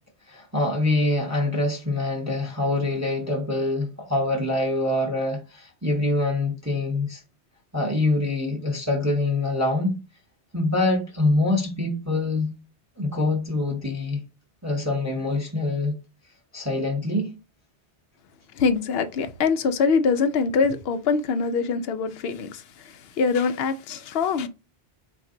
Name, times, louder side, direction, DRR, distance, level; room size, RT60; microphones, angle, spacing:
voice 1, 0.3-7.2 7.7-10.0 10.5-12.5 13.0-14.2 14.6-15.9 16.5-17.3, left 2 dB, 20° right, 0.7 m, -25 dB
voice 2, 18.5-24.5, left 5 dB, 70° left, 0.8 m, -24 dB
4.3 x 2.6 x 3.7 m
omnidirectional pair, 1.1 m